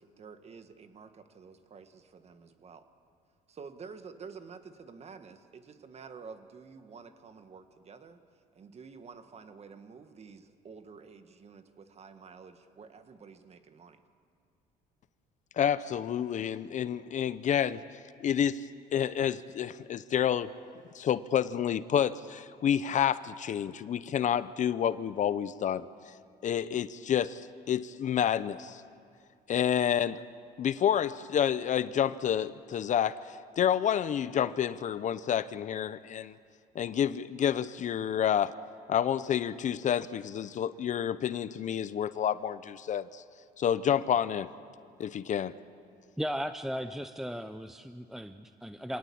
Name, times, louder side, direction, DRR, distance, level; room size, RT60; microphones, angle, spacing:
voice 1, 0.0-2.9 3.5-8.2 8.5-14.0, right 5 dB, 40° right, 1.6 m, -49 dB
voice 2, 15.6-17.8 18.2-18.6 18.9-20.5 20.9-25.9 26.4-28.8 29.5-30.2 30.6-36.4 36.7-38.5 38.9-43.2 43.6-44.5 45.0-45.5, left 9 dB, 45° left, 0.7 m, -29 dB
voice 3, 46.2-49.0, equal, ahead, 0.6 m, -36 dB
25.5 x 18.0 x 8.6 m
cardioid pair, 110°, 17 cm